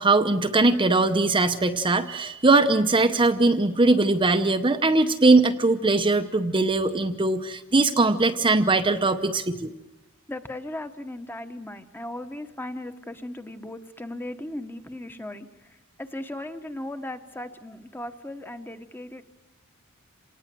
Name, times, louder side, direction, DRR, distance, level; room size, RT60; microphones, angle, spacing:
voice 1, 0.0-9.7, right 3 dB, 25° right, 7 dB, 0.8 m, -21 dB
voice 2, 10.3-19.2, left 1 dB, 10° left, 8 dB, 1.2 m, -37 dB
27.0 x 19.0 x 7.7 m, 1.0 s
head